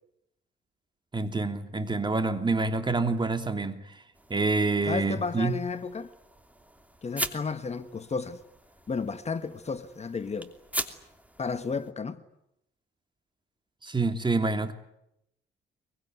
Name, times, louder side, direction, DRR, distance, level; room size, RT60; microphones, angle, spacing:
voice 1, 1.1-4.0 4.3-5.5 13.8-14.7, right 3 dB, 25° right, 3.1 m, -27 dB
sound 1, 4.1-11.9, right 1 dB, 5° right, 3.0 m, -41 dB
voice 2, 4.9-6.1 7.0-8.4 8.9-10.5 11.4-12.2, left 5 dB, 35° left, 1.5 m, -32 dB
24.0 x 23.5 x 9.3 m
cardioid pair, 90°, 20 cm